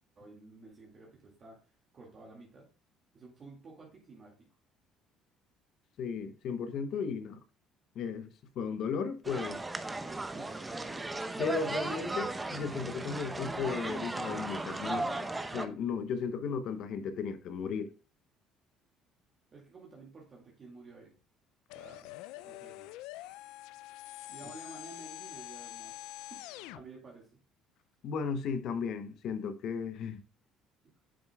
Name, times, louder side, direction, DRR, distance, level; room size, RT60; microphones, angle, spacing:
voice 1, 0.2-2.7 3.1-4.5 10.1-10.7 19.5-21.2 21.7-22.9 24.3-26.4 26.7-27.3, right 3 dB, 40° right, 2.1 m, -52 dB
voice 2, 6.0-7.4 7.9-9.6 11.4-17.9 28.0-30.2, left 6 dB, 65° left, 0.8 m, -35 dB
sound 1, 9.2-15.7, right 2 dB, 15° right, 0.7 m, -36 dB
sound 2, 21.7-26.8, left 17 dB, 85° left, 0.3 m, -45 dB
8.7 x 6.6 x 2.3 m
cardioid pair, 105°, 0 cm